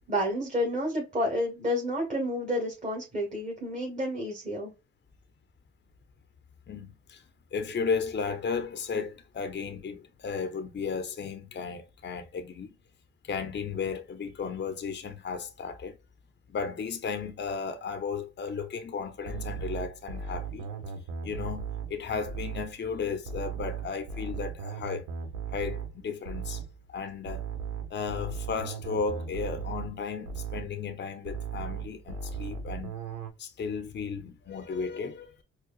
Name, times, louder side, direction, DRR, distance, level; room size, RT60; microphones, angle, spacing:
voice 1, 0.1-4.7, equal, 25° right, 1.5 m, -30 dB
voice 2, 6.7-7.2 7.5-12.7 13.2-15.9 16.5-20.7 21.2-25.1 25.5-26.6 26.9-27.4 27.9-32.9 33.4-35.4, left 5 dB, 35° left, 0.8 m, -34 dB
sound 1, 19.3-22.8 23.3-26.8 27.3-30.8 31.3-33.3, right 6 dB, 85° right, 1.0 m, -37 dB
4.7 x 2.3 x 2.3 m
cardioid pair, 90°, 30 cm